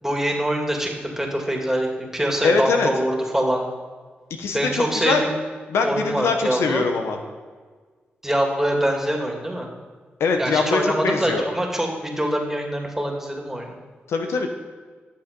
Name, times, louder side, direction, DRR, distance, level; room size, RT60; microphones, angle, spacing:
voice 1, 0.0-3.6 4.5-5.3 5.8-6.8 8.2-9.7 10.4-13.7, right 1 dB, 10° right, 1 dB, 2.5 m, -24 dB
voice 2, 2.4-2.9 4.4-5.2 5.7-7.2 10.2-11.4 14.1-14.5, left 4 dB, 90° left, 4 dB, 0.9 m, -22 dB
10.5 x 7.1 x 5.3 m, 1.5 s
cardioid pair, 50°, 4 cm